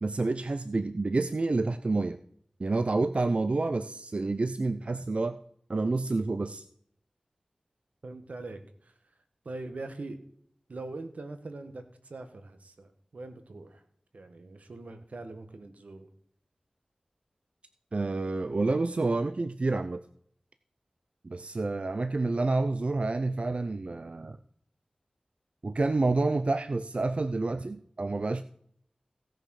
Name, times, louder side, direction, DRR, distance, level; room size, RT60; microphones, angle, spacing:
voice 1, 0.0-2.2 2.6-5.4 5.7-6.7 17.9-20.0 21.2-24.4 25.6-28.4, right 3 dB, 60° right, 10 dB, 0.6 m, -28 dB
voice 2, 8.0-8.9 9.4-10.2 10.7-13.8 14.1-16.1, right 2 dB, 85° right, 8 dB, 1.6 m, -42 dB
17.0 x 6.7 x 6.5 m, 0.66 s
wide cardioid pair, 55°, 2 cm